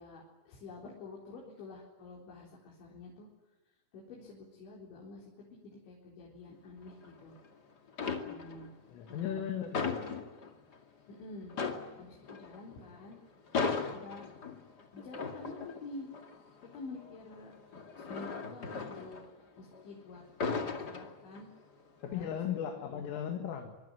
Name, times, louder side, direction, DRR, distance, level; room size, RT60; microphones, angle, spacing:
voice 1, 0.0-3.3 3.9-7.3 8.2-8.7 9.1-9.5 11.1-11.5 12.0-13.2 13.9-14.3 14.9-16.1 16.7-17.6 18.0-19.2 19.6-20.2 20.8-21.5 22.0-22.3 22.8-23.1, left 3 dB, 65° left, -3 dB, 6.3 m, -48 dB
sound 1, 6.9-7.5 7.9-8.7 9.1-10.8 11.1-11.2 11.5-19.8 20.2-21.6 22.0-22.3, left 4 dB, 45° left, 1.3 m, -38 dB
voice 2, 8.9-10.3 22.0-23.8, left 9 dB, 90° left, 4 dB, 4.5 m, -37 dB
25.0 x 23.5 x 9.6 m, 1.2 s
omnidirectional pair, 5.7 m